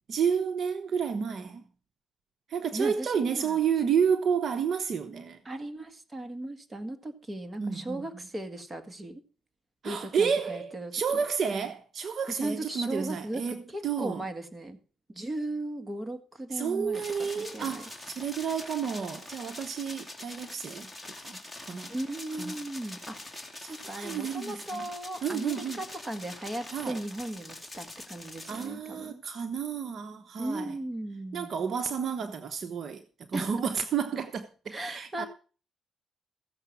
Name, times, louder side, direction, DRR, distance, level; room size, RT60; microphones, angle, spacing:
voice 1, 0.1-1.6 2.5-5.4 7.6-8.0 9.8-14.2 16.5-21.9 22.4-22.6 23.6-24.8 25.2-25.8 26.7-27.0 28.5-30.7 31.3-33.0 33.3-35.3, right 7 dB, 55° right, 1.0 m, -31 dB
voice 2, 2.7-3.6 5.5-9.2 9.8-11.2 12.3-13.4 13.7-14.8 15.1-17.9 21.9-23.2 23.6-29.2 30.4-31.5 33.3-33.5 34.7-35.3, right 1 dB, 20° right, 2.0 m, -37 dB
sound 1, 16.9-28.7, left 2 dB, 5° left, 2.6 m, -44 dB
15.0 x 6.9 x 6.1 m
cardioid pair, 90°, 0 cm